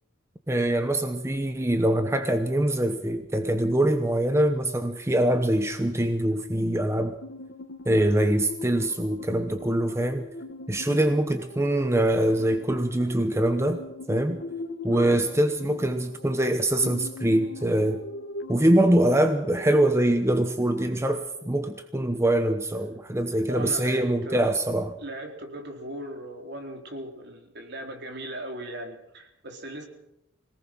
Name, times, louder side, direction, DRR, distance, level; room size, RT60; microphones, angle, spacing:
voice 1, 0.5-7.2 7.9-10.2 10.7-13.8 14.1-14.4 14.8-18.0 18.5-24.9, right 1 dB, 15° right, 8 dB, 1.0 m, -24 dB
sound 1, 7.2-21.6, left 2 dB, 60° left, 1.2 m, -41 dB
voice 2, 23.5-24.6 25.0-29.9, right 1 dB, 55° right, 3 dB, 4.0 m, -38 dB
25.0 x 18.5 x 6.2 m, 0.83 s
head